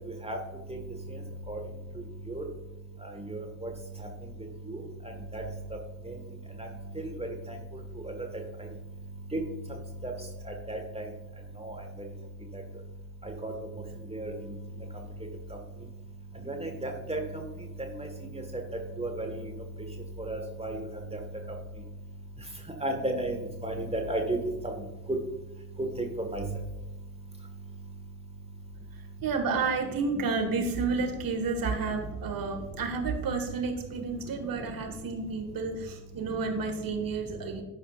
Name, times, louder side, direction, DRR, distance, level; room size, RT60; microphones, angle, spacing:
voice 1, 3.2-3.7 4.7-4.8 5.3-5.4 6.1-6.2 7.0-7.3 9.3-9.4 10.0-10.1 10.7-11.0 11.6-11.7 13.2-13.5 14.1-14.3 16.5-17.2 18.0-18.1 18.3-18.4 19.0-19.4 20.3-20.8 22.8-24.4 26.0-26.4, right 2 dB, 15° right, 3 dB, 1.5 m, -33 dB
voice 2, 29.2-37.6, right 4 dB, 45° right, 4 dB, 1.7 m, -31 dB
15.0 x 5.0 x 2.4 m, 1.0 s
hypercardioid pair, 50°, 47 cm